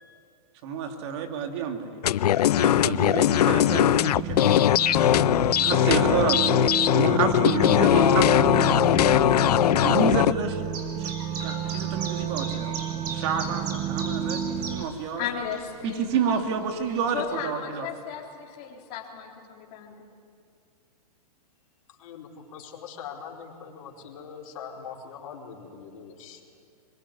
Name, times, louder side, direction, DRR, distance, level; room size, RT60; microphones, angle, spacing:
voice 1, 0.6-2.0 2.5-4.8 5.6-10.7 11.0-11.1 11.4-12.7 13.1-15.2 15.8-17.9, right 6 dB, 45° right, 5 dB, 2.6 m, -30 dB
sound 1, 2.0-10.3, left 12 dB, 80° left, 0.5 m, -20 dB
sound 2, 2.7-14.8, right 8 dB, 25° right, 1.2 m, -31 dB
Chirp tweet, 10.7-17.2, right 3 dB, 75° right, 5.4 m, -39 dB
voice 2, 15.2-16.2 17.1-20.1, left 8 dB, 35° left, 0 dB, 3.8 m, -35 dB
voice 3, 21.9-26.4, left 7 dB, 55° left, -1 dB, 4.6 m, -42 dB
23.5 x 22.0 x 10.0 m, 2.3 s
hypercardioid pair, 160°, 20 cm